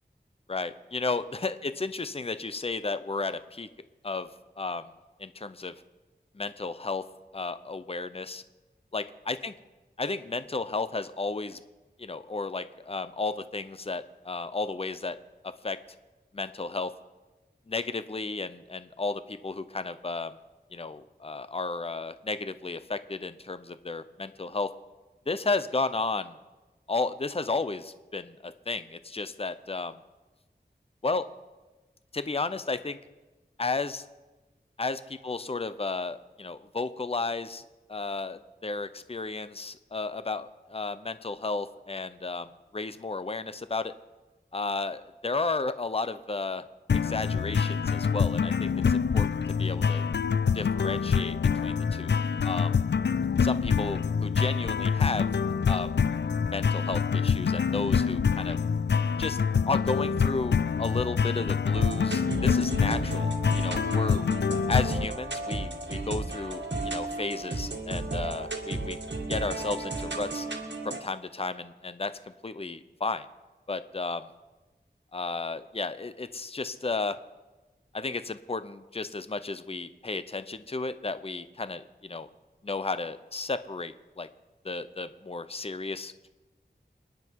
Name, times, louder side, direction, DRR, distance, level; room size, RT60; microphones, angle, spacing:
voice 1, 0.5-3.7 4.0-4.3 4.6-4.9 5.2-5.7 6.3-7.0 7.3-8.4 8.9-9.5 10.0-11.6 12.0-15.2 15.6-15.8 16.3-16.9 17.7-20.4 20.7-24.7 25.3-26.4 26.9-30.0 31.0-31.3 32.1-33.0 33.6-34.0 34.8-37.6 37.9-43.9 44.5-46.6 46.9-50.0 50.5-52.1 52.4-52.7 53.4-55.3 55.7-55.9 56.5-58.6 59.2-59.4 59.7-63.3 63.5-64.2 64.7-69.0 69.3-70.5 70.8-73.3 73.7-74.3 75.1-77.2 77.9-82.3 82.6-84.3 84.6-86.3, left 3 dB, 35° left, 12 dB, 0.7 m, -33 dB
sound 1, 46.9-65.1, left 6 dB, 75° left, 0.4 m, -26 dB
sound 2, 61.7-71.0, right 2 dB, 80° right, 1.8 m, -34 dB
27.5 x 10.0 x 4.7 m, 1.2 s
wide cardioid pair, 55°, 18 cm